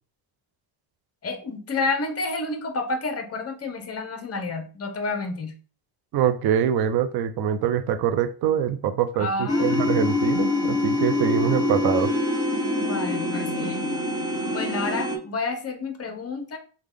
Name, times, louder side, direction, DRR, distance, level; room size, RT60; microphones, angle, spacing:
voice 1, 1.2-5.6 9.2-9.8 12.7-13.9 14.5-16.6, left 3 dB, 30° left, 7 dB, 0.7 m, -30 dB
voice 2, 6.1-12.1, right 9 dB, 50° right, 10 dB, 0.5 m, -24 dB
sound 1, 9.5-15.2, left 2 dB, 10° right, 0.8 m, -25 dB
3.5 x 2.3 x 3.3 m, 0.38 s
cardioid pair, 100°, 48 cm